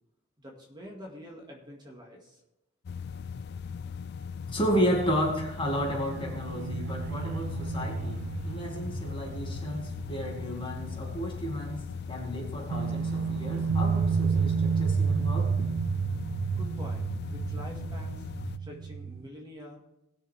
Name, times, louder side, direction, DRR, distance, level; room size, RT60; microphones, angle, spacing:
voice 1, 0.4-2.4 16.6-18.3 18.6-19.8, equal, 20° right, -1 dB, 1.9 m, -46 dB
sound 1, 2.8-18.6, left 6 dB, 55° left, 0.3 m, -39 dB
voice 2, 4.5-15.5, equal, 25° left, 0 dB, 2.1 m, -32 dB
sound 2, 5.7-11.1 11.4-11.5 12.7-19.3, right 6 dB, 70° right, 0.4 m, -31 dB
19.0 x 6.7 x 3.5 m, 0.88 s
head